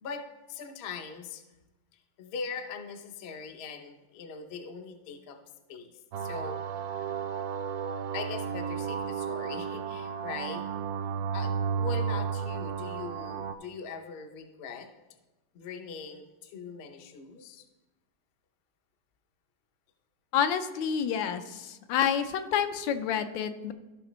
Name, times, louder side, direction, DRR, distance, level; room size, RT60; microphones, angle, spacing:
voice 1, 0.0-1.4 2.2-5.4 5.7-5.9 6.2-6.6 7.0-7.1 8.1-10.6 11.3-14.9 15.5-17.6, left 5 dB, 60° left, 5 dB, 0.6 m, -41 dB
sound 1, 6.1-13.5, right 6 dB, 75° right, 0.8 m, -33 dB
voice 2, 20.3-23.7, left 8 dB, 80° left, 9 dB, 1.3 m, -28 dB
14.5 x 5.9 x 3.1 m, 1.1 s
omnidirectional pair, 2.1 m